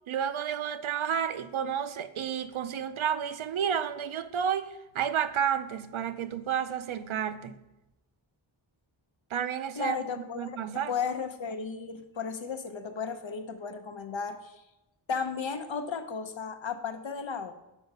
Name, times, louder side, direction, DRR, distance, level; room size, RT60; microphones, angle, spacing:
voice 1, 0.1-7.5 9.3-10.9, right 8 dB, 80° right, 0.6 m, -31 dB
voice 2, 9.8-14.5 15.1-17.5, left 5 dB, 70° left, 0.8 m, -34 dB
6.3 x 4.8 x 5.4 m
wide cardioid pair, 75°, 47 cm